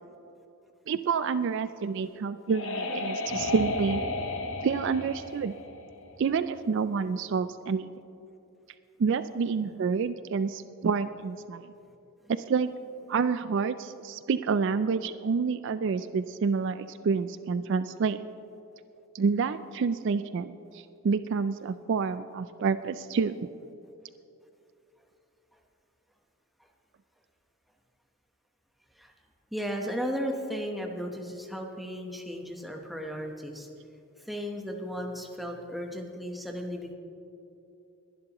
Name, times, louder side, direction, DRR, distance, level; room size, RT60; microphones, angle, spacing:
voice 1, 0.9-4.0 4.6-5.5 6.2-7.9 9.0-11.7 12.3-12.7 13.1-18.2 19.1-23.5, right 5 dB, 55° right, 12 dB, 0.3 m, -28 dB
sound 1, 1.9-6.5, left 2 dB, 60° left, 0.9 m, -34 dB
voice 2, 29.5-33.7 34.2-36.9, equal, ahead, 1 dB, 1.0 m, -35 dB
21.5 x 11.5 x 3.0 m, 2.8 s
head